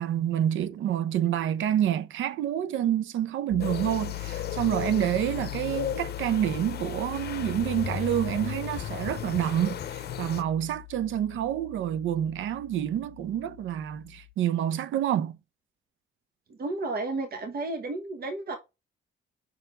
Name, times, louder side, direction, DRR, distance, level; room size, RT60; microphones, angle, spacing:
voice 1, 0.0-15.4, right 11 dB, 75° right, 0.7 m, -28 dB
Piano, 3.5-14.3, left 19 dB, 85° left, 0.4 m, -41 dB
sound 1, 3.6-10.4, left 9 dB, 55° left, 0.7 m, -36 dB
voice 2, 16.6-18.6, right 2 dB, 50° right, 1.3 m, -32 dB
5.7 x 4.6 x 3.7 m
cardioid pair, 90°, 20 cm